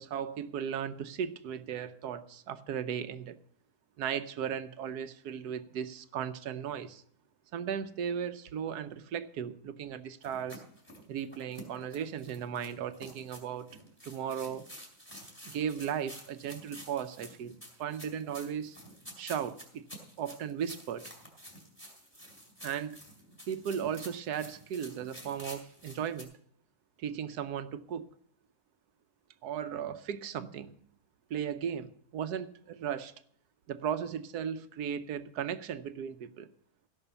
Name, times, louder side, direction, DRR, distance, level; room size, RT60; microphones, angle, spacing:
voice 1, 0.0-3.4 4.0-7.0 7.5-10.6 11.1-13.8 14.0-14.6 15.5-17.5 17.8-18.8 19.2-19.8 20.2-21.1 22.6-23.0 23.5-26.3 27.0-28.1 29.4-30.8 31.3-33.1 33.7-36.5, right 8 dB, 85° right, 1.3 m, -36 dB
sound 1, 10.2-26.2, equal, 5° left, 3.5 m, -50 dB
16.5 x 6.0 x 6.9 m
omnidirectional pair, 1.6 m